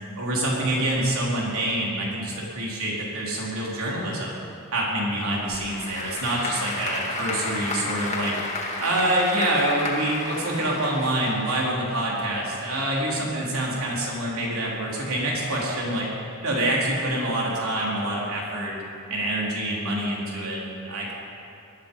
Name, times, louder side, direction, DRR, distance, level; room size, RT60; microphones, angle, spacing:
voice 1, 0.2-4.3 4.7-8.3 8.8-16.1 16.4-18.7 19.1-21.1, right 1 dB, 70° right, -4 dB, 4.1 m, -26 dB
Applause / Crowd, 5.3-11.9, left 2 dB, 30° left, 2.2 m, -32 dB
19.0 x 13.0 x 5.6 m, 2.6 s
head